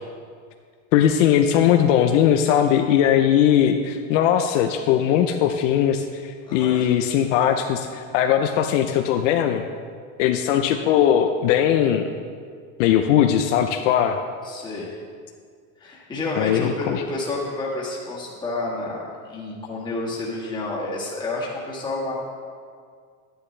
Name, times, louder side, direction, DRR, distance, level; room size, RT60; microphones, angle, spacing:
voice 1, 0.9-9.6 10.2-12.0 12.8-14.2 16.4-17.0, left 9 dB, 60° left, 5 dB, 0.6 m, -19 dB
voice 2, 6.5-6.9 14.4-14.9 15.8-22.1, left 2 dB, 10° left, -5 dB, 1.6 m, -30 dB
11.5 x 10.0 x 3.3 m, 2.1 s
supercardioid pair, 165°, 41 cm